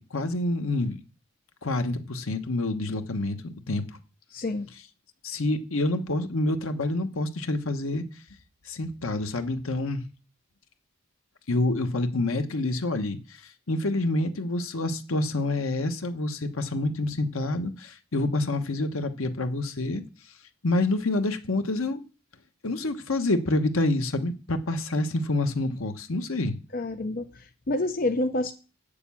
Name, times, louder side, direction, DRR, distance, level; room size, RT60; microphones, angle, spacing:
voice 1, 0.1-1.0 1.6-4.0 5.2-8.2 8.6-10.0 11.5-20.0 20.6-22.0 22.6-26.5, left 2 dB, 80° left, 1.2 m, -27 dB
voice 2, 4.3-4.7 26.7-28.5, left 2 dB, 45° left, 0.6 m, -28 dB
8.5 x 6.9 x 7.0 m
head